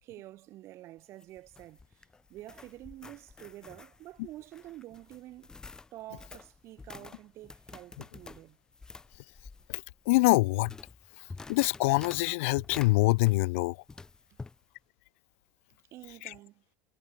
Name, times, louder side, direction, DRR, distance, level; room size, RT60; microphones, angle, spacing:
voice 1, 0.0-5.5 5.9-8.6 14.3-14.4 15.9-16.6, right 16 dB, 40° right, 3.3 m, -48 dB
sound 1, 1.0-13.6 13.9-14.6, left 3 dB, 10° left, 1.0 m, -49 dB
voice 2, 9.7-10.7 11.5-13.8, left 23 dB, 85° left, 0.4 m, -25 dB
cardioid pair, 170°, 7 cm